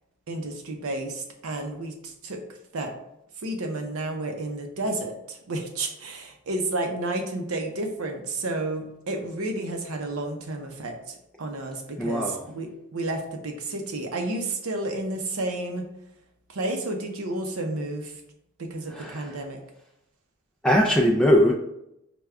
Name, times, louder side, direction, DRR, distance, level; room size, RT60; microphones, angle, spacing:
voice 1, 0.3-2.4 2.7-2.9 3.4-15.9 16.5-18.2 18.6-19.6, right 2 dB, 85° right, 4 dB, 0.7 m, -31 dB
voice 2, 12.0-12.5 18.9-19.4 20.6-21.5, equal, 5° left, -2 dB, 0.3 m, -21 dB
5.1 x 2.2 x 3.4 m, 0.83 s
head